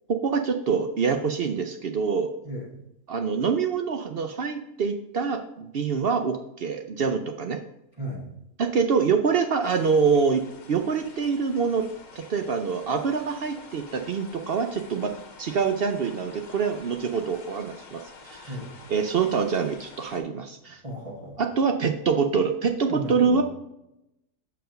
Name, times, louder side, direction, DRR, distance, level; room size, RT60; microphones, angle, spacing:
voice 1, 0.1-2.3 3.1-7.6 8.6-10.4 10.7-11.9 12.2-15.1 15.4-18.0 18.2-18.6 18.9-20.8 21.4-23.4, right 5 dB, 60° right, 5 dB, 0.6 m, -25 dB
sound 1, 9.6-20.2, left 4 dB, 60° left, 1.4 m, -48 dB
voice 2, 20.8-21.4 22.9-23.4, equal, 25° right, -4 dB, 1.5 m, -34 dB
6.4 x 4.5 x 6.4 m, 0.87 s
omnidirectional pair, 1.6 m